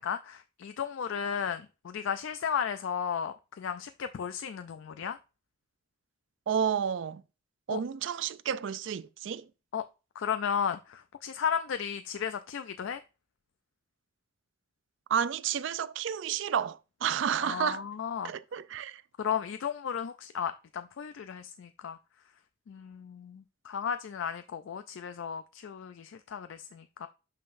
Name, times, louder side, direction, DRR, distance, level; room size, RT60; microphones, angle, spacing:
voice 1, 0.0-5.2 7.7-7.8 9.7-9.8 10.2-13.0 17.4-18.3 19.2-22.0 22.7-27.1, left 7 dB, 70° left, 0.3 m, -34 dB
voice 2, 6.5-7.2 7.7-9.5 15.1-17.8 18.2-19.0, right 8 dB, 65° right, 0.4 m, -31 dB
11.0 x 3.8 x 2.5 m
head